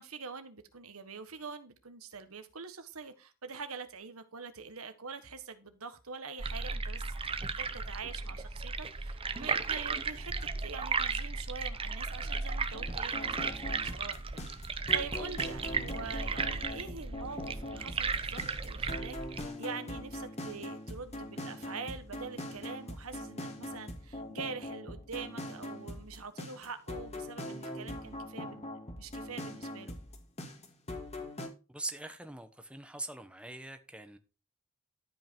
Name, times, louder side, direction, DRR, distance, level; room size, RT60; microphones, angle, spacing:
voice 1, 0.0-13.4 13.6-29.9, right 5 dB, 90° right, 1.4 m, -44 dB
sound 1, 6.4-19.5, right 4 dB, 25° right, 0.7 m, -35 dB
sound 2, 12.7-31.5, left 1 dB, 30° left, 1.9 m, -42 dB
voice 2, 31.7-34.2, right 2 dB, 5° right, 1.0 m, -42 dB
12.5 x 5.6 x 4.5 m
head